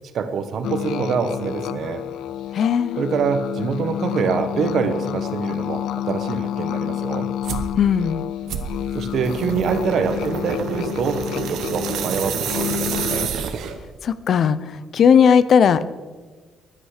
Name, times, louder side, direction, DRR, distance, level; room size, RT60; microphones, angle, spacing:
voice 1, 0.1-2.0 2.9-7.3 8.9-13.3, right 6 dB, 50° right, 9 dB, 1.2 m, -25 dB
sound 1, 0.6-13.3, left 12 dB, 90° left, 0.4 m, -29 dB
voice 2, 2.5-3.0 7.8-8.2 14.0-14.6 14.9-15.9, left 7 dB, 45° left, 15 dB, 0.6 m, -16 dB
sound 2, 7.4-7.7 8.5-13.9, right 7 dB, 70° right, 1.2 m, -28 dB
14.5 x 11.0 x 5.0 m, 1.3 s
cardioid pair, 170°, 0 cm